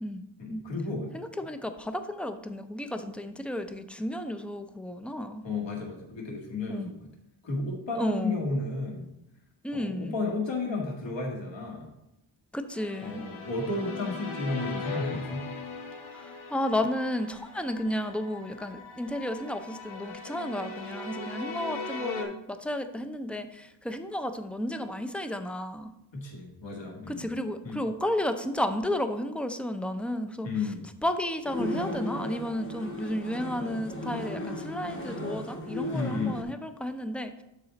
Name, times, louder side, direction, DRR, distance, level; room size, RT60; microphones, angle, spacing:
voice 1, 0.4-1.1 5.4-7.0 7.4-9.1 9.7-11.9 13.0-15.4 26.1-27.3 27.6-27.8 30.4-30.8 35.9-36.4, left 3 dB, 60° left, 0 dB, 2.0 m, -32 dB
voice 2, 1.1-5.4 6.7-6.9 8.0-8.4 9.6-10.1 12.5-13.3 16.1-25.9 27.1-30.5 31.0-37.4, left 1 dB, 5° left, 8 dB, 0.4 m, -32 dB
sound 1, 12.8-22.2, left 4 dB, 80° left, 1.2 m, -39 dB
sound 2, 31.5-36.4, left 1 dB, 25° left, 1.1 m, -36 dB
12.0 x 4.1 x 3.9 m, 0.88 s
wide cardioid pair, 130°, 49 cm